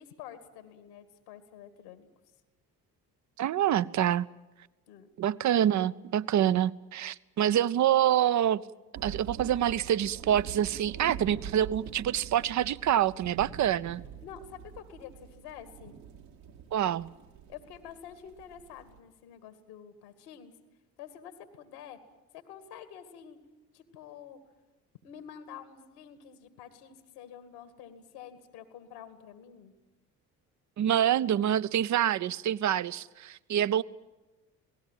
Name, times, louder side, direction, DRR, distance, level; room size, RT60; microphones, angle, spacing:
voice 1, 0.0-2.1 4.9-5.1 14.2-15.9 17.5-20.5 21.0-22.0 22.3-23.4 23.7-24.4 25.0-29.7, left 9 dB, 70° left, 2.2 m, -48 dB
voice 2, 3.4-4.3 5.2-8.6 9.0-14.0 16.7-17.1 30.8-33.8, right 11 dB, 35° right, 0.7 m, -26 dB
sound 1, 8.9-19.0, right 8 dB, 70° right, 2.0 m, -45 dB
28.0 x 18.5 x 7.5 m
figure-of-eight pair, 50°, 48 cm